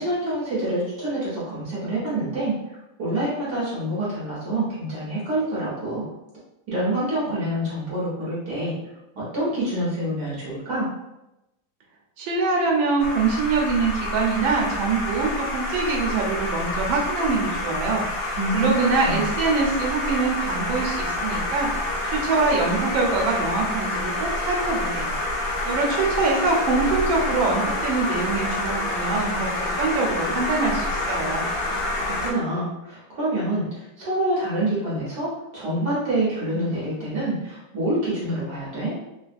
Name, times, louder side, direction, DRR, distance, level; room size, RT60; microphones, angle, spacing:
voice 1, 0.0-2.6 3.0-6.1 6.7-8.7 9.2-10.9 18.4-19.2 32.0-35.3 35.5-38.9, right 1 dB, 55° right, -8 dB, 1.7 m, -26 dB
voice 2, 12.2-25.2 25.6-31.5, right 4 dB, 90° right, -1 dB, 1.5 m, -24 dB
sound 1, 13.0-32.3, left 2 dB, 65° left, 1.1 m, -27 dB
3.7 x 2.3 x 2.5 m, 0.92 s
omnidirectional pair, 2.1 m